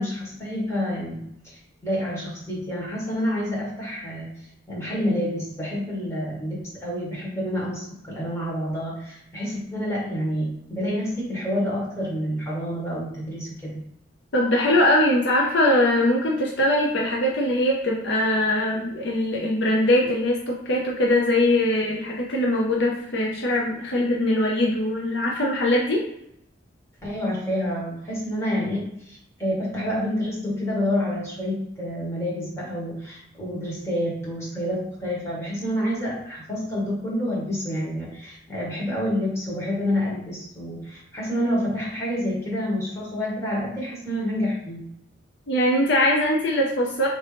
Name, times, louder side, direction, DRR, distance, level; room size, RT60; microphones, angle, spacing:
voice 1, 0.0-4.3 4.7-13.8 27.0-44.8, equal, 15° left, -7 dB, 1.6 m, -28 dB
voice 2, 14.3-26.0 45.5-47.1, left 1 dB, 60° left, -1 dB, 0.6 m, -21 dB
4.3 x 3.0 x 3.3 m, 0.75 s
head